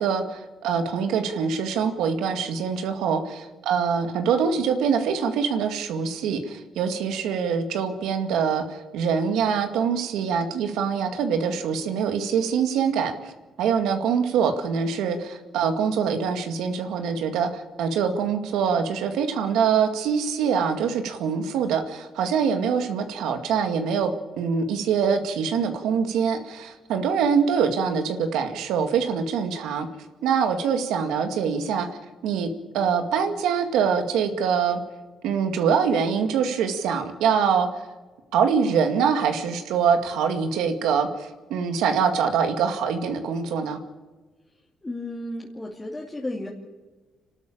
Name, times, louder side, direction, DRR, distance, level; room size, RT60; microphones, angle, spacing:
voice 1, 0.0-13.3 13.6-24.1 24.4-29.9 30.2-31.9 32.2-34.8 35.2-37.8 38.3-43.8, right 6 dB, 90° right, 6 dB, 2.1 m, -24 dB
voice 2, 44.8-46.5, left 1 dB, 20° left, -3 dB, 2.7 m, -33 dB
26.5 x 12.5 x 8.9 m, 1.2 s
cardioid pair, 90°, 0 cm